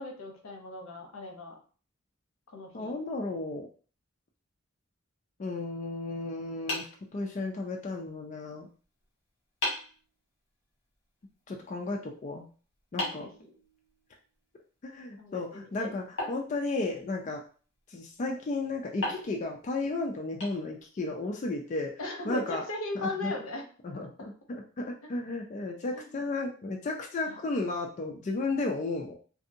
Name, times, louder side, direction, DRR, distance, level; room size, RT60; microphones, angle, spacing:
voice 1, 0.0-1.6 2.5-2.9 13.2-13.3 15.2-15.9 22.0-23.7 24.0-24.3 25.9-26.2 27.3-27.4, left 2 dB, 85° left, 2 dB, 0.7 m, -38 dB
voice 2, 2.7-3.7 5.4-6.9 7.1-8.7 11.5-12.5 12.9-13.3 14.8-17.4 17.9-21.9 22.2-22.6 22.9-23.3 23.8-29.1, left 2 dB, 35° left, 1 dB, 0.3 m, -34 dB
sound 1, 6.7-7.8 9.0-9.1 9.6-10.0 13.0-14.2 16.2-17.3 19.0-21.1, left 1 dB, 65° left, 1.2 m, -38 dB
2.6 x 2.6 x 2.5 m, 0.40 s
head